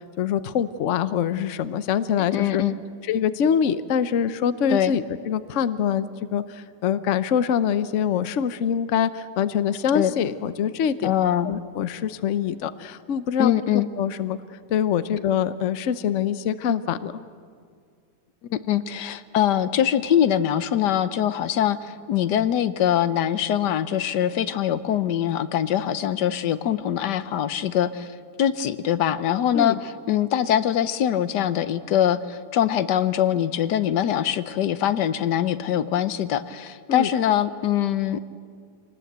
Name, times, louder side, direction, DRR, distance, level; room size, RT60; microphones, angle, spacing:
voice 1, 0.0-2.6 3.1-11.1 11.4-14.4 14.7-17.1 29.5-29.7 36.9-37.1, left 8 dB, 55° left, 13 dB, 1.0 m, -24 dB
voice 2, 2.3-2.8 4.7-4.9 9.9-10.1 11.0-11.5 13.4-13.9 18.5-28.1 28.4-38.3, left 10 dB, 80° left, 13 dB, 1.4 m, -23 dB
25.5 x 19.5 x 8.0 m, 2.1 s
omnidirectional pair, 1.8 m